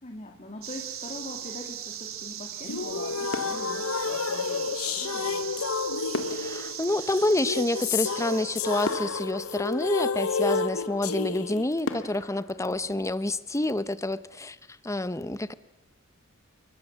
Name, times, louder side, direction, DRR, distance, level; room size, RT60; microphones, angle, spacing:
voice 1, 0.0-5.8 12.6-13.2, left 1 dB, 35° left, 2 dB, 2.9 m, -43 dB
sound 1, 0.6-9.0, right 10 dB, 70° right, 2.7 m, -39 dB
sound 2, 2.6-11.6, left 5 dB, 85° left, 1.0 m, -30 dB
sound 3, 3.3-4.8 6.1-8.0 8.5-8.6 8.8-10.4 11.0-11.1 11.8-13.7 14.1-14.3, left 2 dB, 65° left, 2.2 m, -39 dB
voice 2, 6.3-14.6 14.8-15.5, left 1 dB, 15° left, 15 dB, 0.8 m, -28 dB
29.5 x 23.0 x 7.5 m, 0.93 s
head